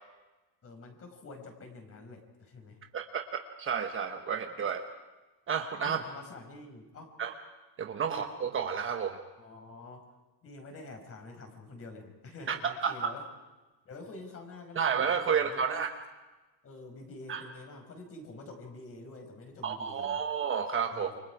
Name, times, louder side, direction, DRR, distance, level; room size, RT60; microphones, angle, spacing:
voice 1, 0.6-2.8 5.8-7.1 8.0-8.3 9.4-10.1 10.4-13.3 13.9-15.9 16.6-20.2 20.9-21.2, left 2 dB, 25° left, 4 dB, 5.4 m, -47 dB
voice 2, 2.9-4.8 5.5-6.0 7.2-7.3 7.8-9.2 12.5-13.1 14.7-15.9 17.3-17.4 19.6-21.1, right 7 dB, 25° right, 5 dB, 1.2 m, -31 dB
29.0 x 24.5 x 5.0 m, 1.2 s
supercardioid pair, 135°, 50 cm